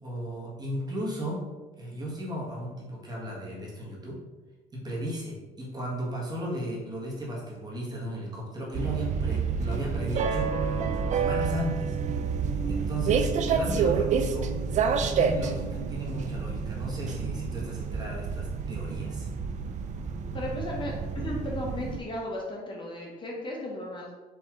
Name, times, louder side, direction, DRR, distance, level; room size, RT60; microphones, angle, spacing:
voice 1, 0.0-1.4 1.8-4.2 4.7-10.8 11.1-12.0 12.7-14.5 15.1-19.3, equal, 25° right, -4 dB, 1.4 m, -35 dB
sound 1, 8.7-22.0, right 6 dB, 45° right, 0.4 m, -29 dB
voice 2, 20.3-24.1, left 1 dB, 30° left, -2 dB, 0.8 m, -35 dB
4.7 x 2.8 x 3.6 m, 1.2 s
cardioid pair, 110°, 17 cm